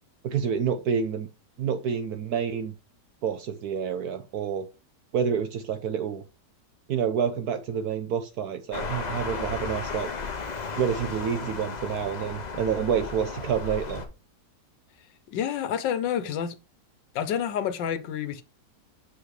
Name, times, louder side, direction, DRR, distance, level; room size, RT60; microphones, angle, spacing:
voice 1, 0.2-1.3 1.6-2.7 3.2-4.7 5.1-6.2 6.9-10.1 10.8-14.0, right 7 dB, 70° right, 1.1 m, -28 dB
sound 1, 8.7-14.1, left 4 dB, 40° left, 0.6 m, -34 dB
voice 2, 15.3-16.6 17.1-18.4, left 9 dB, 90° left, 1.5 m, -28 dB
7.2 x 6.5 x 3.2 m
omnidirectional pair, 1.9 m